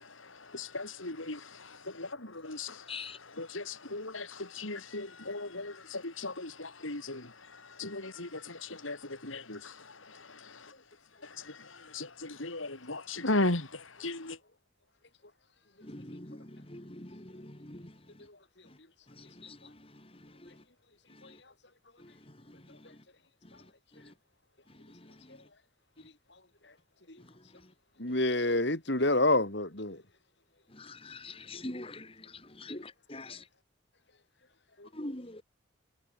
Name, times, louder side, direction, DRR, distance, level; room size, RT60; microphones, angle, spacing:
voice 1, 0.5-2.8 3.4-7.3 7.8-9.8 10.1-10.5 11.4-11.7 11.9-14.4, left 2 dB, 85° left, 4.7 m, -36 dB
voice 2, 15.9-17.8 19.4-19.6 30.8-32.1 32.6-33.4 35.0-35.4, left 2 dB, 30° left, 2.6 m, -43 dB
voice 3, 28.0-30.0 34.8-34.9, left 2 dB, 60° left, 4.0 m, -27 dB
head